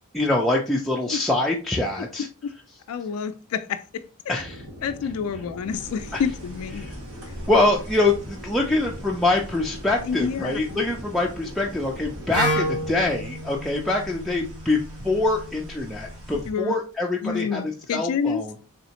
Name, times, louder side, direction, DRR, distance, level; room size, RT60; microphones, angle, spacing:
voice 1, 0.1-2.3 4.3-4.6 6.1-6.2 6.8-6.9 7.5-18.6, left 2 dB, ahead, 0.4 m, -24 dB
voice 2, 2.0-2.5 2.9-4.4 4.8-6.9 10.0-10.9 16.5-16.7 17.2-18.6, left 6 dB, 70° left, 0.3 m, -29 dB
sound 1, 4.3-13.1, equal, 90° right, 2.3 m, -41 dB
sound 2, 5.7-16.5, equal, 65° right, 1.7 m, -42 dB
Wind instrument woodwind instrument, 12.3-16.2, equal, 35° right, 1.9 m, -31 dB
4.0 x 3.5 x 2.8 m
head